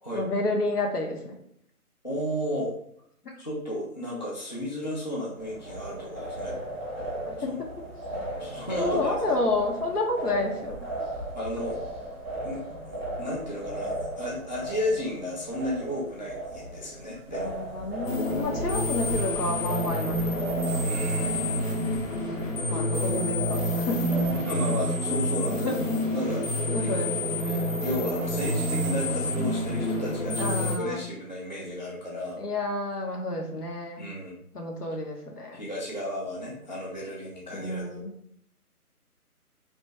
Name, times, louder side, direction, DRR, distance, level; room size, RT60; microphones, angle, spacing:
voice 1, 0.1-1.3 7.2-7.5 8.8-11.1 17.4-20.6 22.7-24.3 25.5-25.9 26.2-27.1 30.4-31.1 32.4-34.1 34.5-35.6 37.5-38.1, left 2 dB, 85° left, 1 dB, 1.1 m, -30 dB
voice 2, 2.0-2.7 3.4-6.5 7.5-7.6 8.4-9.4 11.4-11.8 12.4-17.5 20.8-21.8 22.8-23.1 24.3-25.8 26.1-26.5 26.8-26.9 27.4-32.4 34.0-34.3 35.5-38.0, equal, 30° left, -5 dB, 0.4 m, -33 dB
sound 1, 5.4-24.4, right 1 dB, 15° left, 0.9 m, -37 dB
sound 2, 18.0-30.8, left 1 dB, 60° left, 0.9 m, -28 dB
3.0 x 2.6 x 3.2 m, 0.69 s
figure-of-eight pair, 160°, 45 cm